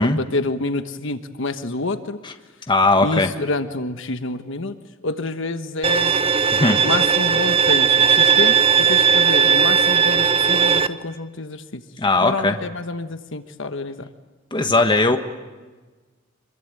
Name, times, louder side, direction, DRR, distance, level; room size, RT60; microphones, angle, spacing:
voice 1, 0.0-2.2 3.0-4.8 5.0-6.2 6.8-11.8 12.2-14.1, left 2 dB, 70° left, 9 dB, 1.3 m, -27 dB
voice 2, 2.7-3.3 6.5-6.8 12.0-12.6 14.5-15.2, left 2 dB, 25° left, 6 dB, 1.3 m, -18 dB
Bowed string instrument, 5.8-10.9, right 7 dB, 30° right, 0.9 m, -17 dB
26.0 x 23.0 x 9.0 m, 1.3 s
head